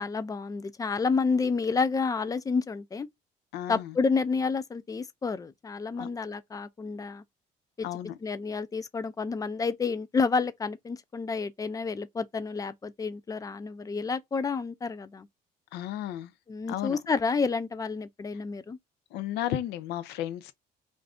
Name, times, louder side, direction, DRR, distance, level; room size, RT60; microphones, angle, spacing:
voice 1, 0.0-3.1 3.7-7.2 7.8-7.9 8.2-15.3 16.5-18.8, left 4 dB, 20° left, 0.3 m, -29 dB
voice 2, 3.5-3.9 6.0-6.1 7.8-8.2 15.7-16.3 16.7-17.0 19.1-20.5, left 12 dB, 85° left, 0.5 m, -33 dB
2.5 x 2.4 x 3.4 m
cardioid pair, 110°, 17 cm